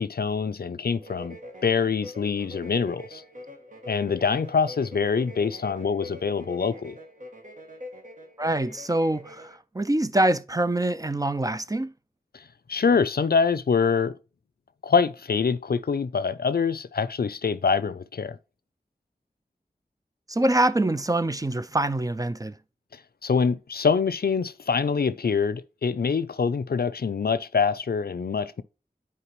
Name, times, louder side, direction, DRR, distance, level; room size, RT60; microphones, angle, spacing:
voice 1, 0.0-1.4 1.6-3.2 3.9-7.0 12.3-12.4 12.7-14.1 14.8-18.4 23.2-28.6, left 5 dB, 75° left, 0.5 m, -25 dB
sound 1, 1.0-9.6, left 1 dB, 55° right, 1.7 m, -44 dB
voice 2, 8.4-11.9 20.3-22.6, right 1 dB, 20° right, 0.4 m, -25 dB
10.0 x 4.5 x 3.0 m
wide cardioid pair, 45°, 16 cm